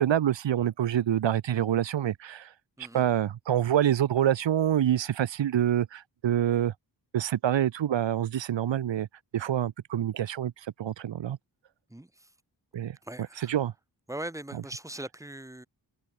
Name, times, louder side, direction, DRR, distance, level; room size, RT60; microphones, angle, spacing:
voice 1, 0.0-2.5 2.9-6.7 7.1-9.1 9.3-11.4 12.7-13.0 13.5-13.7, right 10 dB, 85° right, 1.1 m, -26 dB
voice 2, 11.9-12.3 13.0-13.6 14.1-15.7, right 1 dB, 5° right, 2.7 m, -40 dB
wide cardioid pair, 175°, 43 cm